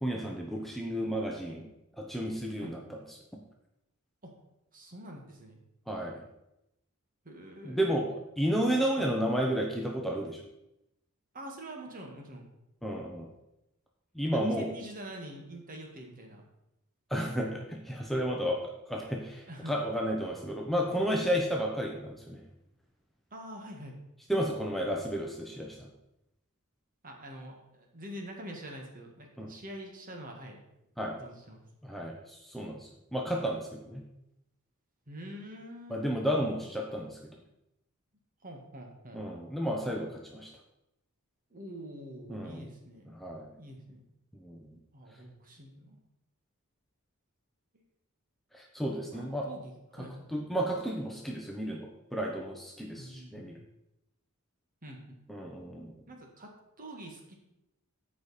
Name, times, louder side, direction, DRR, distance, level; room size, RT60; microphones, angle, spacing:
voice 1, 0.0-1.7 2.0-3.0 3.3-3.4 5.9-6.2 7.6-10.4 12.8-13.3 14.1-14.7 17.1-18.6 18.9-22.4 24.3-25.9 29.4-29.5 31.0-31.2 31.8-34.0 35.9-37.2 39.1-40.5 42.3-42.7 43.1-43.5 44.4-44.8 48.5-49.5 50.3-53.6 55.3-55.9, equal, ahead, -1 dB, 0.8 m, -32 dB
voice 2, 4.7-5.6 7.2-7.9 8.5-9.1 11.3-12.5 14.3-16.4 19.5-19.7 23.3-24.0 27.0-30.6 31.1-31.6 35.1-36.1 38.4-39.2 41.5-43.2 43.6-44.0 44.9-46.0 47.7-47.8 49.1-50.3 53.0-53.6 54.8-55.2 56.1-56.5 56.8-57.4, equal, 40° right, 1 dB, 1.7 m, -45 dB
13.5 x 5.1 x 4.2 m, 0.88 s
head